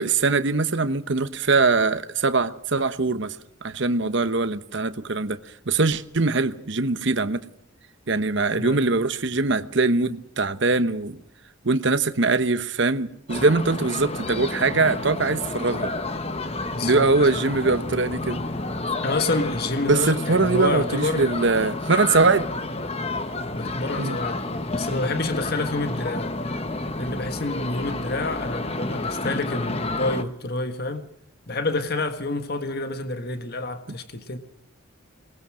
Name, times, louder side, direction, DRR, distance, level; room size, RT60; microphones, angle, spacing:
voice 1, 0.0-5.4 5.7-7.4 8.1-11.2 11.6-15.9 16.8-18.4 19.9-22.5 24.0-24.2, right 3 dB, 55° right, 1.0 m, -22 dB
voice 2, 8.5-8.9 16.7-17.1 19.0-21.3 23.5-26.4 27.0-31.1 31.5-34.4, left 2 dB, 45° left, 1.6 m, -28 dB
sound 1, 13.3-30.2, left 2 dB, 30° left, 1.2 m, -30 dB
22.5 x 20.0 x 6.3 m
head